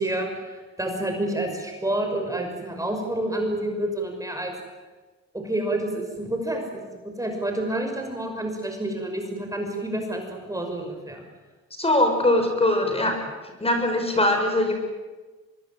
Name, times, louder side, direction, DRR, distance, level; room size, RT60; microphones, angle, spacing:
voice 1, 0.0-4.5 5.3-6.9 7.2-11.2, right 1 dB, 10° right, 3 dB, 5.8 m, -29 dB
voice 2, 11.8-13.1 13.6-14.7, left 1 dB, 20° left, 5 dB, 6.2 m, -21 dB
25.0 x 21.5 x 9.3 m, 1.3 s
cardioid pair, 90°, 30 cm